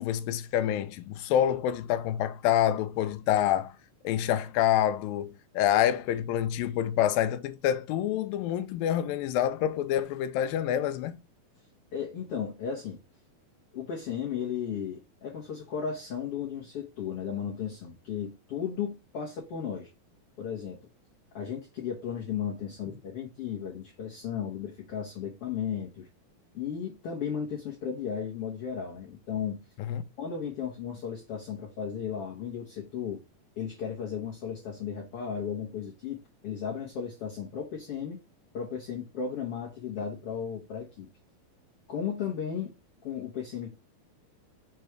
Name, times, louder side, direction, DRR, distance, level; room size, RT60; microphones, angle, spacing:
voice 1, 0.0-3.7 4.0-11.2 29.9-30.0, left 11 dB, 80° left, 2.3 m, -27 dB
voice 2, 11.9-13.0 13.7-19.9 20.4-20.8 21.3-26.1 26.5-29.6 30.2-33.2 33.6-38.2 38.5-41.1 41.9-42.7 43.0-43.8, left 7 dB, 60° left, 1.6 m, -35 dB
6.2 x 3.3 x 4.7 m
omnidirectional pair, 4.2 m